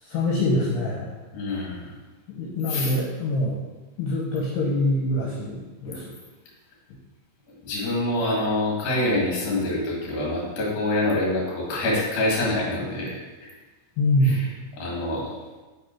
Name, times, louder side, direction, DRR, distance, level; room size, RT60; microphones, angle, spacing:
voice 1, 0.0-1.1 2.3-3.6 4.0-6.1 14.0-14.4, left 1 dB, 75° left, -4 dB, 2.5 m, -24 dB
voice 2, 1.3-1.9 2.7-2.9 7.6-13.2 14.2-14.5 14.8-15.3, left 1 dB, 55° left, -3 dB, 2.0 m, -26 dB
5.9 x 5.5 x 4.4 m, 1.2 s
omnidirectional pair, 5.6 m